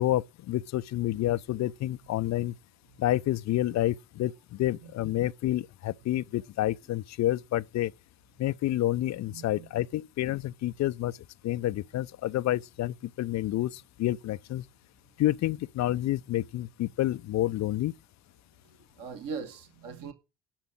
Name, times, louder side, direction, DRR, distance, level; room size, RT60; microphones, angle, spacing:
voice 1, 0.0-2.5 3.0-7.9 8.4-11.2 11.4-14.6 15.2-17.9, left 14 dB, 40° left, 0.6 m, -29 dB
voice 2, 9.3-9.7 18.6-20.1, right 5 dB, 45° right, 2.2 m, -41 dB
11.5 x 5.8 x 8.6 m
figure-of-eight pair, 55°, 44 cm